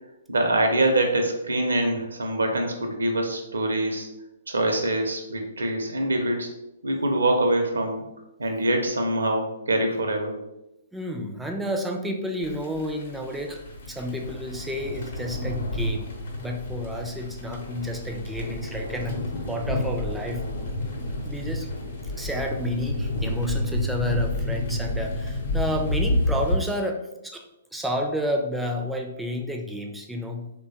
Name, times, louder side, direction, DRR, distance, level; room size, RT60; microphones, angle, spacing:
voice 1, 0.3-4.1 4.5-6.5 6.8-8.0 8.4-10.3, right 1 dB, 80° right, 3 dB, 0.6 m, -24 dB
voice 2, 10.9-16.1 16.4-20.5 21.2-21.7 22.2-27.4 27.7-30.5, equal, 5° right, 3 dB, 0.3 m, -30 dB
sound 1, 12.4-26.6, left 1 dB, 60° left, 0.7 m, -29 dB
3.0 x 2.2 x 2.6 m, 0.91 s
figure-of-eight pair, 125°, 0 cm